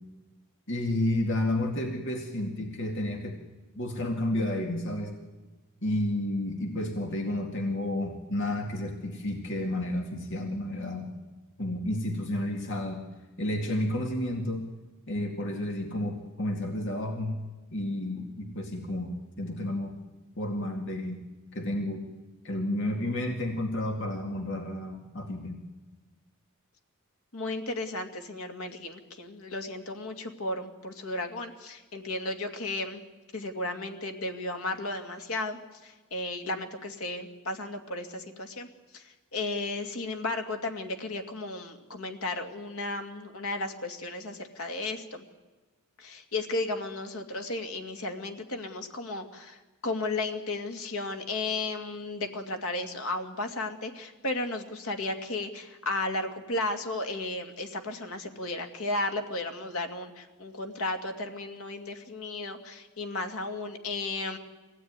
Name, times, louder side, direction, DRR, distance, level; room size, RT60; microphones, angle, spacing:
voice 1, 0.7-3.4 3.7-5.2 5.8-11.1 11.6-13.0 13.4-14.7 15.1-17.4 17.7-20.0 20.4-21.2 21.5-22.1 22.4-25.6, left 1 dB, 60° left, 3 dB, 2.2 m, -31 dB
voice 2, 27.3-33.0 33.3-38.7 38.9-45.3 46.0-64.4, left 2 dB, 85° left, 5 dB, 2.4 m, -34 dB
24.0 x 17.0 x 9.7 m, 1.2 s
head